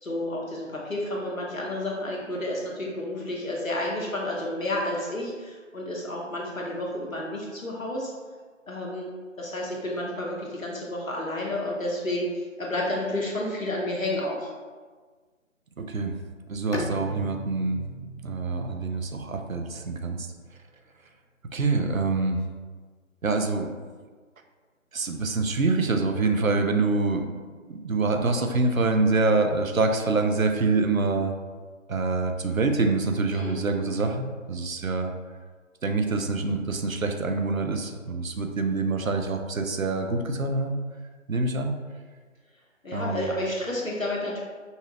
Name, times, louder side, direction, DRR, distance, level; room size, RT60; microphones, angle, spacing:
voice 1, 0.0-8.1 8.7-9.1 9.4-14.5 33.3-33.6 42.8-44.4, left 1 dB, 80° left, -2 dB, 1.2 m, -30 dB
voice 2, 15.8-16.2 16.5-17.8 18.2-20.3 21.5-22.4 23.2-23.8 24.9-27.4 27.7-31.3 31.9-35.1 35.8-40.8 41.3-41.7 42.9-43.3, right 3 dB, 85° right, 5 dB, 0.7 m, -25 dB
Bowed string instrument, 16.7-20.3, left 1 dB, 60° left, 0.6 m, -39 dB
5.5 x 2.4 x 2.9 m, 1.5 s
figure-of-eight pair, 155°, 40 cm